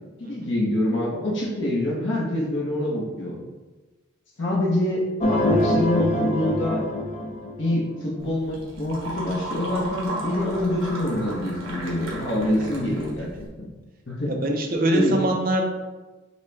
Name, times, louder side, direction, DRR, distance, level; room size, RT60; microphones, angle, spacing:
voice 1, 0.2-3.4 4.4-6.8 7.6-13.3 13.6-13.7 14.1-14.4 14.9-15.2, left 1 dB, 65° left, -3 dB, 0.9 m, -26 dB
sound 1, 5.2-8.0, left 1 dB, 35° left, 0.4 m, -24 dB
sound 2, 8.2-13.5, right 1 dB, 85° right, 1.2 m, -35 dB
voice 2, 14.2-15.6, right 1 dB, 45° right, 2 dB, 0.6 m, -23 dB
6.4 x 2.2 x 3.3 m, 1.2 s
head